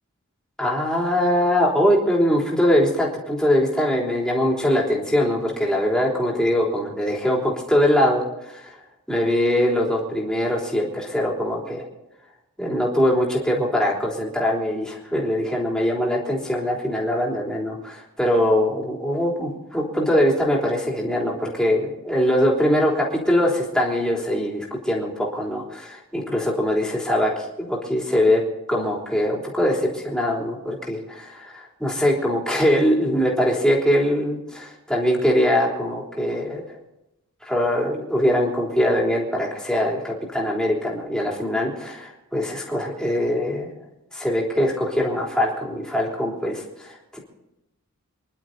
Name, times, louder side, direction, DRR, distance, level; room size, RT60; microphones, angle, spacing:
voice 1, 0.6-8.7 9.1-11.8 12.6-28.4 28.7-36.6 37.4-43.7 44.1-47.2, left 1 dB, 5° left, -3 dB, 3.5 m, -22 dB
27.0 x 11.5 x 4.0 m, 0.90 s
head